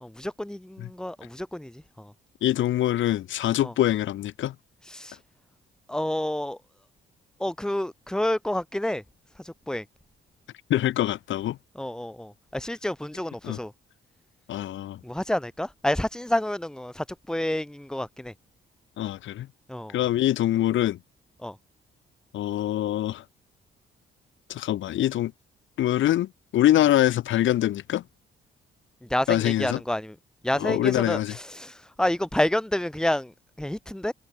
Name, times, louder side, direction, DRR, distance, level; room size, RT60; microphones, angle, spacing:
voice 1, 0.0-2.1 3.6-3.7 4.9-5.2 5.9-6.6 7.4-9.0 9.4-9.8 11.7-13.7 15.0-18.3 19.7-20.0 21.4-21.6 29.0-30.1 30.4-33.3 33.6-34.1, left 1 dB, 5° left, 1.5 m, -29 dB
voice 2, 2.4-4.5 10.7-11.6 13.4-13.6 14.5-15.0 19.0-19.5 19.9-21.0 22.3-23.2 24.5-25.3 25.8-28.0 29.3-29.8 30.6-31.4, left 13 dB, 75° left, 1.3 m, -24 dB
cardioid pair, 90°, 20 cm